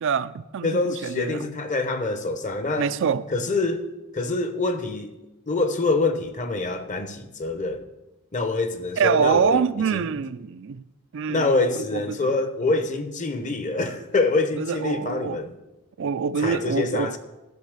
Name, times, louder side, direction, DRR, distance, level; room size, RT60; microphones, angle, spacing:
voice 1, 0.0-1.5 2.8-3.2 9.0-10.8 11.1-12.3 14.6-15.4 16.0-17.1, right 6 dB, 60° right, 0.4 m, -25 dB
voice 2, 0.6-2.9 3.3-3.9 4.1-5.1 5.5-7.9 8.3-9.6 9.9-10.1 11.3-15.5 16.4-17.2, left 3 dB, 35° left, 0.9 m, -25 dB
12.0 x 5.4 x 6.6 m
head